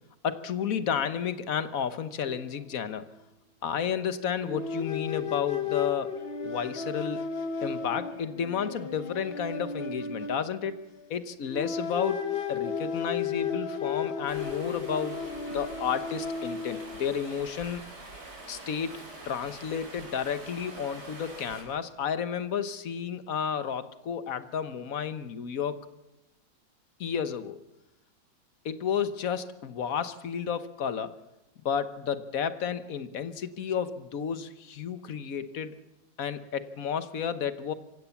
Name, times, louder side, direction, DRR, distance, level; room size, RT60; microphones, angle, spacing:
voice 1, 0.2-3.1 3.6-6.1 6.4-7.2 7.6-10.8 11.1-15.2 15.5-17.8 18.5-19.0 19.3-25.8 27.0-27.6 28.6-31.1 31.6-35.8 36.2-37.7, left 7 dB, 55° left, 12 dB, 1.4 m, -32 dB
sound 1, 2.2-2.4 2.7-2.9 4.4-11.1 11.5-17.1, left 6 dB, 35° left, 1.2 m, -34 dB
Stream, 14.3-21.6, right 2 dB, 60° right, 4.9 m, -45 dB
25.5 x 16.0 x 7.2 m, 0.92 s
omnidirectional pair, 1.9 m